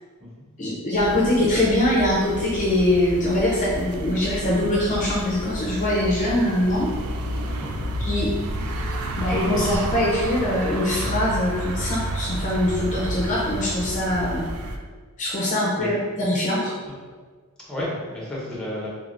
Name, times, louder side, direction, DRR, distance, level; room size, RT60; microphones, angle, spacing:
voice 1, 0.6-6.9 8.0-8.3 9.2-14.4 15.2-16.7, left 1 dB, 35° left, -5 dB, 0.5 m, -23 dB
sound 1, 0.9-14.8, right 1 dB, 80° right, 0.4 m, -30 dB
voice 2, 7.6-7.9 15.7-15.9 17.7-18.9, left 1 dB, 5° left, -6 dB, 0.8 m, -31 dB
3.4 x 3.1 x 2.5 m, 1.5 s
head